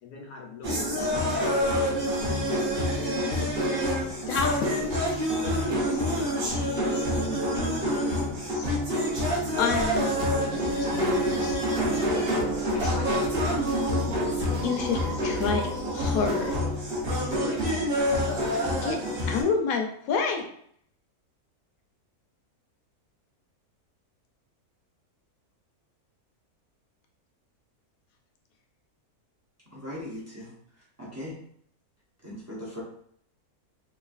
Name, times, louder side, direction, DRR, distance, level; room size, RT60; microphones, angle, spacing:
voice 1, 0.0-3.2 5.0-7.3 7.8-8.9 12.7-13.7 17.4-17.7, left 5 dB, 90° left, 1 dB, 1.2 m, -41 dB
sound 1, 0.6-19.4, equal, 45° right, 0.8 m, -27 dB
voice 2, 9.6-11.6 14.6-16.5 18.8-19.0 19.3-20.5, left 5 dB, 70° left, 3 dB, 0.9 m, -29 dB
sound 2, 9.8-16.7, left 2 dB, 80° right, 1.1 m, -42 dB
voice 3, 29.7-30.5 31.0-31.4 32.2-32.8, left 1 dB, 25° right, -6 dB, 0.3 m, -38 dB
3.0 x 2.5 x 2.4 m, 0.65 s
omnidirectional pair, 1.6 m